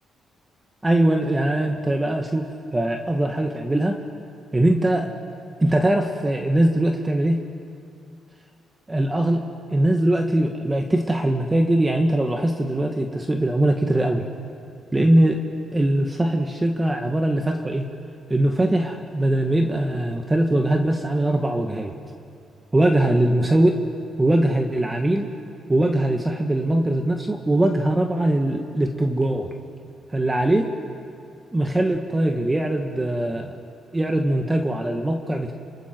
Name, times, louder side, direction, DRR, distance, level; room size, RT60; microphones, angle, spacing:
voice 1, 0.8-4.0 4.5-5.1 5.6-7.4 8.9-14.2 14.9-15.4 15.7-17.9 18.3-22.0 22.7-23.8 24.2-25.3 25.7-29.5 30.1-30.7 31.5-33.6 33.9-35.5, right 1 dB, 15° right, 3 dB, 1.7 m, -21 dB
28.0 x 25.5 x 4.7 m, 2.4 s
cardioid pair, 90°, 0 cm